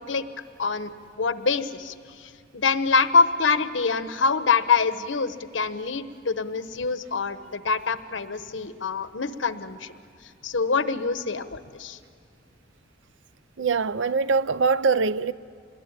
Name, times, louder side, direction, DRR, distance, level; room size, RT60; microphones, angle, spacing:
voice 1, 0.6-0.9 1.2-9.9 10.4-12.0, left 4 dB, 85° left, 1.0 m, -25 dB
voice 2, 13.6-15.3, right 4 dB, 75° right, 0.6 m, -23 dB
26.0 x 21.0 x 9.9 m
head